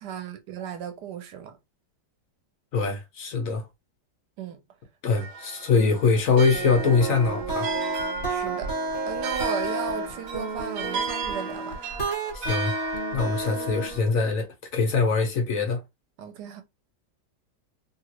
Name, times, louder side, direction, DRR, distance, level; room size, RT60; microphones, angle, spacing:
voice 1, 0.0-1.6 4.4-4.6 5.8-5.9 8.2-8.7 9.1-11.8 16.2-16.6, right 8 dB, 80° right, 1.2 m, -35 dB
voice 2, 2.7-3.7 5.0-7.7 12.3-12.7 13.1-15.8, left 4 dB, 60° left, 1.0 m, -23 dB
sound 1, 5.2-14.0, right 4 dB, 60° right, 1.1 m, -35 dB
sound 2, 6.5-14.1, right 2 dB, 40° left, 1.3 m, -31 dB
3.0 x 2.4 x 2.8 m
omnidirectional pair, 1.8 m